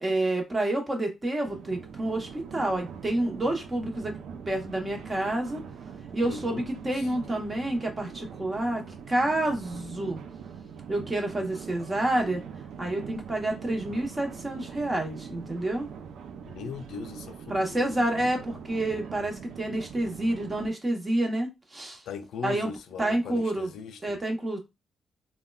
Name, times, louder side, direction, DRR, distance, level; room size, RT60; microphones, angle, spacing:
voice 1, 0.0-4.2 4.5-5.6 6.1-10.2 10.9-12.4 12.8-15.9 17.5-22.0 22.4-22.7 23.0-23.7 24.0-24.6, right 1 dB, 20° right, 0.8 m, -28 dB
sound 1, 1.4-20.7, right 7 dB, 85° right, 0.4 m, -42 dB
voice 2, 6.2-7.2 16.4-18.0 22.1-24.2, left 6 dB, 90° left, 0.4 m, -39 dB
3.5 x 2.1 x 2.3 m
cardioid pair, 120°, 0 cm